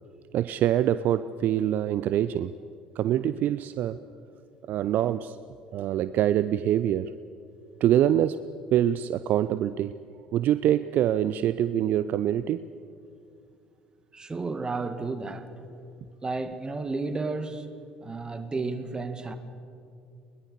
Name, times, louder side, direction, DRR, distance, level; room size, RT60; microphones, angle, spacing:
voice 1, 0.3-2.6 3.0-4.0 4.7-5.4 5.7-7.1 7.8-10.0 10.3-12.6, right 11 dB, 50° right, 15 dB, 0.5 m, -25 dB
voice 2, 14.1-15.5 16.2-17.7 18.0-19.4, right 3 dB, 20° right, 10 dB, 1.9 m, -32 dB
21.5 x 21.5 x 6.7 m, 2.5 s
figure-of-eight pair, 55°, 4 cm